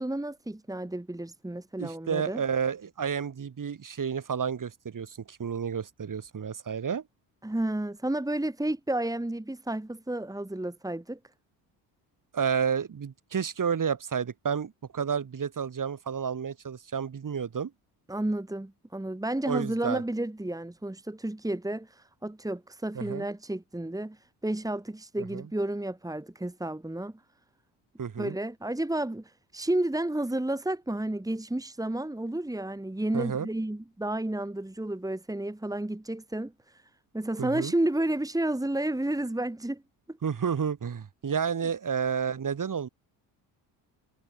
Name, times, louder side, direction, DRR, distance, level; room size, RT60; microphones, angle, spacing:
voice 1, 0.0-2.4 7.4-11.2 18.1-24.2 24.4-27.1 28.2-36.5 37.1-39.8 40.1-40.2, right 1 dB, 10° right, 3.2 m, -31 dB
voice 2, 1.8-7.0 12.3-17.7 19.4-20.0 22.9-23.3 25.3-25.5 28.0-28.4 33.1-33.5 37.4-37.7 40.2-42.9, right 7 dB, 45° right, 6.0 m, -31 dB
hypercardioid pair, 60°, 46 cm